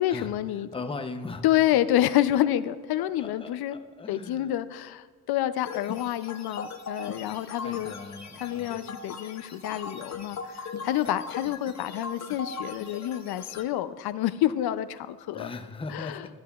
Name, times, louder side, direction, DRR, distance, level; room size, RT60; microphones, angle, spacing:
voice 1, 0.0-0.7 1.4-3.8 4.1-7.9 8.4-15.5 15.9-16.4, left 13 dB, 80° left, 13 dB, 0.5 m, -28 dB
voice 2, 0.7-1.4 3.0-4.5 7.2-8.9 15.3-16.4, left 3 dB, 15° left, 6 dB, 0.6 m, -39 dB
sound 1, 5.6-13.6, left 4 dB, 45° left, 0.8 m, -39 dB
13.5 x 11.0 x 2.3 m, 1.5 s
cardioid pair, 135°, 37 cm